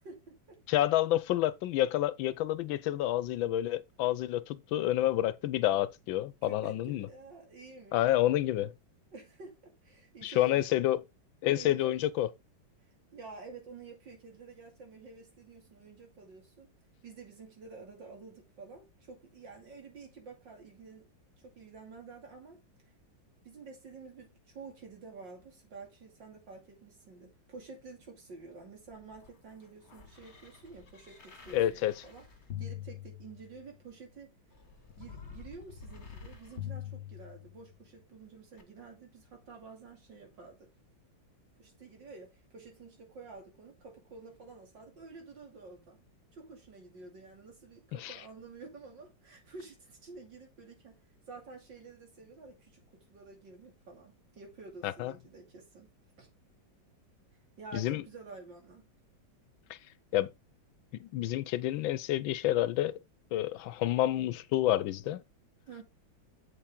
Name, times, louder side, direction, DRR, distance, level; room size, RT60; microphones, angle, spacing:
voice 1, 0.0-0.6 6.4-8.0 9.1-10.7 11.5-11.9 13.1-16.7 17.0-21.1 21.4-22.6 23.4-32.2 32.6-34.3 35.0-40.7 41.6-46.0 46.3-51.0 51.3-52.8 53.1-55.9 56.2-56.3 57.6-58.9 65.7-65.8, right 4 dB, 70° right, 3.3 m, -50 dB
voice 2, 0.7-7.1 7.9-8.7 10.2-11.0 11.4-12.3 31.5-32.0 48.0-48.2 54.8-55.1 57.7-58.0 59.7-59.8 60.1-60.3 60.9-62.9 63.3-65.2, left 13 dB, 85° left, 1.4 m, -29 dB
sound 1, 28.9-33.8 34.5-37.8 38.6-38.7, left 10 dB, 40° left, 1.6 m, -46 dB
7.3 x 6.8 x 3.7 m
omnidirectional pair, 2.1 m